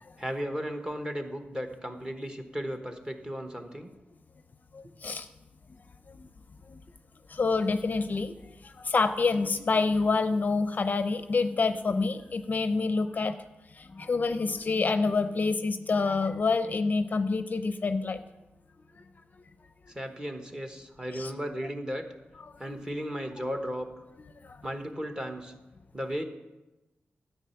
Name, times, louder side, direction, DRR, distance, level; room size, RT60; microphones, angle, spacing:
voice 1, 0.2-3.9 19.9-22.0 22.6-23.9 24.6-25.5 25.9-26.2, equal, 20° right, 6 dB, 1.1 m, -35 dB
voice 2, 4.7-5.3 7.3-8.3 8.9-13.3 14.0-18.2 21.1-21.3 22.6-22.8 24.2-24.3, left 4 dB, 45° left, 10 dB, 0.5 m, -27 dB
13.0 x 8.1 x 5.7 m, 1.0 s
wide cardioid pair, 140°, 4 cm